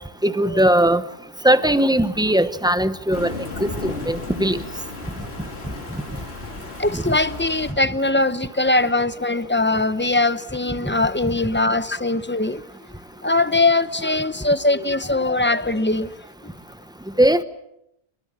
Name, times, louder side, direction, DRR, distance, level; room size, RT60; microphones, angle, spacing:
voice 1, 0.2-1.0 1.4-3.3 3.6-4.6 6.9-7.2 17.2-17.4, right 1 dB, 5° right, 11 dB, 1.1 m, -19 dB
Thunder, 3.1-7.7, left 3 dB, 80° left, 2.9 m, -34 dB
voice 2, 6.8-12.6 12.9-16.1 16.4-16.5, left 2 dB, 10° left, 13 dB, 0.8 m, -21 dB
25.5 x 23.5 x 7.5 m, 0.82 s
omnidirectional pair, 1.1 m